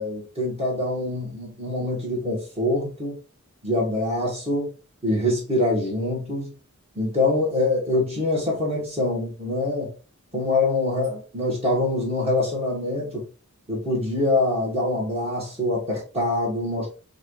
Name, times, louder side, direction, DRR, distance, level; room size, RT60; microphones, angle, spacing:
voice 1, 0.0-3.2 3.6-4.7 5.0-6.5 7.0-9.9 10.3-13.3 13.7-16.9, left 2 dB, 25° right, 1.9 m, -24 dB
6.0 x 2.7 x 3.1 m
head